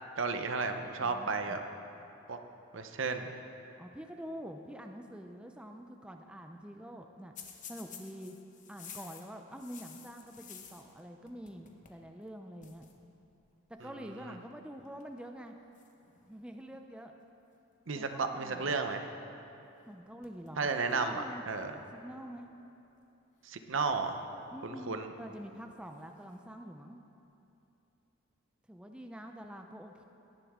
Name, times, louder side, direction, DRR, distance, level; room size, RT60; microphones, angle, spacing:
voice 1, 0.2-1.6 2.3-2.4 2.7-3.3 17.9-19.1 20.6-21.8 23.4-24.2 24.6-25.1, right 4 dB, 70° right, 7 dB, 0.8 m, -33 dB
voice 2, 1.0-1.6 3.8-7.4 7.7-8.4 8.7-12.9 13.7-15.6 16.3-17.1 17.9-18.8 19.9-22.5 24.5-27.0 28.7-30.0, equal, 5° right, 4 dB, 0.4 m, -46 dB
sound 1, 7.4-11.0 11.3-12.0 12.3-12.4 12.6-12.9 13.8-14.1 14.8-15.2 15.7-16.8 19.8-19.9 20.2-21.1 21.5-21.6 22.5-22.6 23.7-24.6 25.9-26.4, left 7 dB, 40° left, 0.9 m, -53 dB
18.0 x 10.5 x 3.7 m, 2.8 s
head